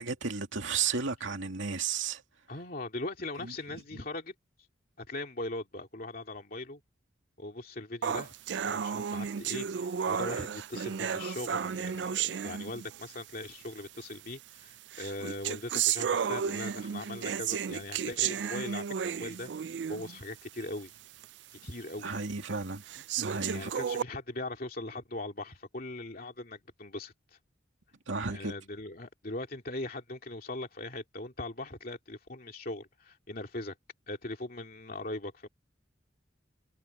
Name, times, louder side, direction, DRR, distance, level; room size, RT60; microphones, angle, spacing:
voice 1, 0.0-2.2 3.4-3.5 22.0-23.7 28.1-28.5, right 5 dB, 90° right, 2.4 m, -33 dB
voice 2, 2.5-4.3 5.0-6.8 7.4-8.3 8.6-20.9 21.6-22.1 23.5-27.4 28.3-33.7 34.1-35.5, left 2 dB, 50° left, 2.6 m, -40 dB
sound 1, 8.0-13.2 14.0-14.1 14.9-20.2 20.6-20.7 21.2-21.3 22.0-22.1 22.9-24.0, right 8 dB, 65° right, 0.4 m, -33 dB
head